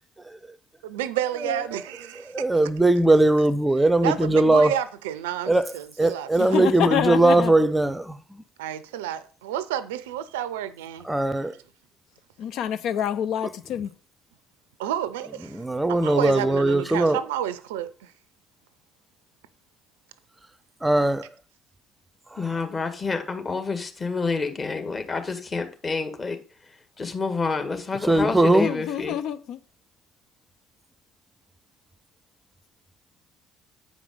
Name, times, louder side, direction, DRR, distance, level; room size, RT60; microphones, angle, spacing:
voice 1, 0.8-2.3 4.0-7.0 8.6-11.1 14.8-15.6 15.9-18.1, right 11 dB, 75° right, 0.5 m, -30 dB
voice 2, 2.3-4.7 5.5-5.7 6.0-8.2 11.0-11.5 15.5-17.2 20.8-21.3 28.0-28.7, right 2 dB, 10° right, 0.6 m, -20 dB
voice 3, 6.4-7.5 12.4-13.9 28.6-29.6, left 10 dB, 60° left, 0.6 m, -27 dB
voice 4, 22.4-26.4 27.0-29.2, left 4 dB, 30° left, 1.6 m, -28 dB
8.6 x 5.1 x 5.1 m
figure-of-eight pair, 55°, 0 cm